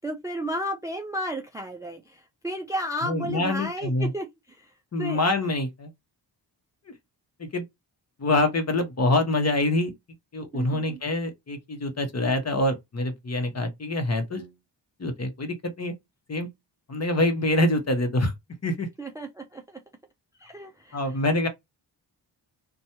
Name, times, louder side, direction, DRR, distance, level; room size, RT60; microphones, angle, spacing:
voice 1, 0.0-4.7 5.0-5.2 10.5-11.0 19.0-19.8 20.4-21.2, equal, 10° right, 0.4 m, -33 dB
voice 2, 3.0-4.1 4.9-5.9 7.4-7.6 8.2-9.9 10.3-14.5 15.0-15.9 16.3-16.5 16.9-18.3 18.6-18.9 20.9-21.5, left 2 dB, 35° left, 0.9 m, -25 dB
2.9 x 2.3 x 2.7 m
cardioid pair, 85°, 44 cm